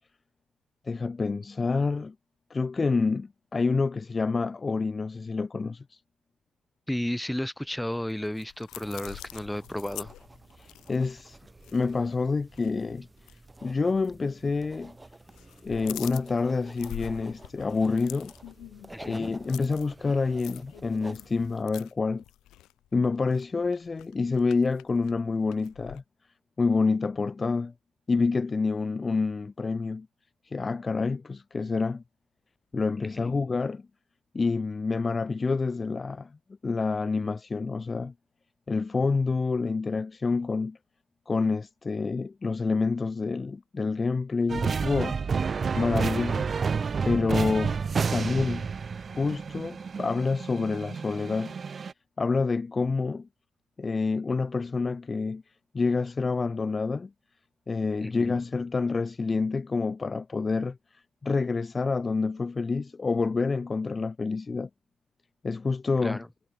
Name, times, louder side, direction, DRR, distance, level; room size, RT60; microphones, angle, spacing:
voice 1, 0.9-2.1 2.5-6.0 10.6-11.4 11.7-13.1 13.6-14.9 15.6-18.3 19.0-22.2 22.9-26.0 26.6-27.7 28.1-30.1 30.4-32.0 32.7-33.8 34.3-36.3 36.6-38.1 38.7-40.8 41.3-45.1 45.8-46.5 47.1-47.7 48.1-48.7 49.1-51.5 52.2-53.3 53.8-55.4 55.7-57.1 57.7-64.7 65.4-66.2, left 4 dB, 30° left, 0.3 m, -28 dB
voice 2, 6.9-10.1 18.9-19.3 33.0-33.3 58.0-58.4 66.0-66.3, left 1 dB, 5° left, 1.2 m, -33 dB
sound 1, 7.7-12.2 12.5-12.7 13.2-13.4 14.2-14.9 15.1-26.0, left 15 dB, 90° left, 3.5 m, -46 dB
sound 2, 8.7-21.6, right 2 dB, 15° right, 1.6 m, -50 dB
sound 3, 44.5-51.9, right 5 dB, 40° right, 0.7 m, -30 dB
cardioid pair, 90°, 0 cm